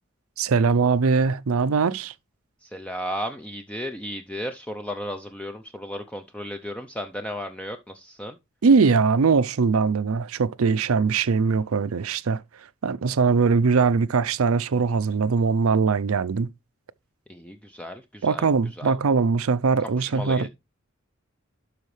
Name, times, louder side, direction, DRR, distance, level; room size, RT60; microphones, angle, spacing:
voice 1, 0.4-2.1 8.6-12.4 12.8-16.5 18.2-20.5, right 5 dB, 85° right, 0.5 m, -21 dB
voice 2, 2.6-8.4 17.3-18.5 18.8-18.9 20.0-20.5, equal, 5° left, 0.5 m, -34 dB
12.0 x 4.9 x 3.2 m
head